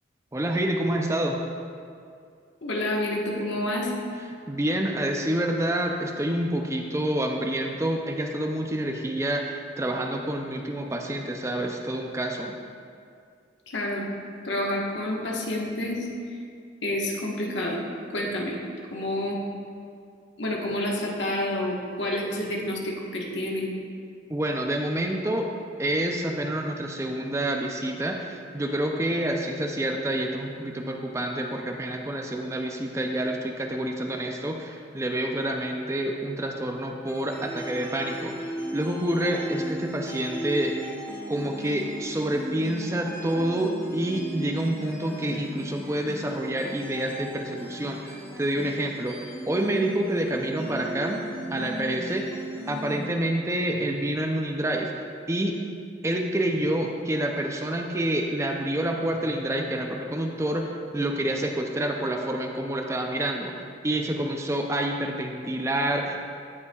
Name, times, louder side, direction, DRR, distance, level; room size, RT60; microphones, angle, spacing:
voice 1, 0.3-1.4 4.5-12.6 24.3-25.5 25.8-40.7 41.3-51.2 51.5-54.9 55.3-55.6 56.0-63.5 63.8-66.2, right 1 dB, 15° right, 2 dB, 0.4 m, -28 dB
voice 2, 2.6-3.9 13.7-14.0 14.4-16.1 16.8-17.8 18.1-18.6 18.9-19.4 20.4-23.7, left 1 dB, 75° left, -2 dB, 1.3 m, -28 dB
sound 1, 37.1-53.1, right 1 dB, 10° left, 1.5 m, -37 dB
16.5 x 5.5 x 2.4 m, 2.4 s
head